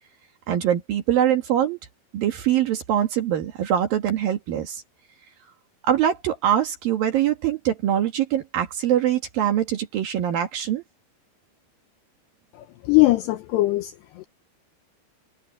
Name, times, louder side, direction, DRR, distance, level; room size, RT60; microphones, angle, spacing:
voice 1, 0.5-1.8 2.1-4.8 5.8-10.8, right 10 dB, 60° right, 2.8 m, -23 dB
voice 2, 12.8-14.3, left 20 dB, 80° left, 2.5 m, -20 dB
omnidirectional pair, 5.6 m